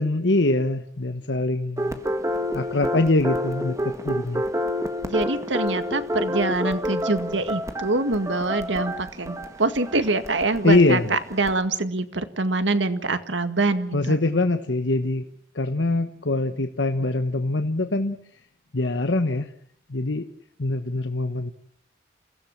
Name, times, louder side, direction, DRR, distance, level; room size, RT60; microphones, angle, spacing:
voice 1, 0.0-2.0 2.5-4.4 10.6-11.1 13.9-15.2 15.5-18.2 18.7-19.5 19.9-20.3 20.6-21.5, left 2 dB, 80° left, 8 dB, 1.2 m, -23 dB
sound 1, 1.8-11.6, equal, 15° right, 1.7 m, -29 dB
voice 2, 5.0-14.2, right 2 dB, 90° right, 10 dB, 2.0 m, -25 dB
29.0 x 16.5 x 7.4 m, 0.64 s
head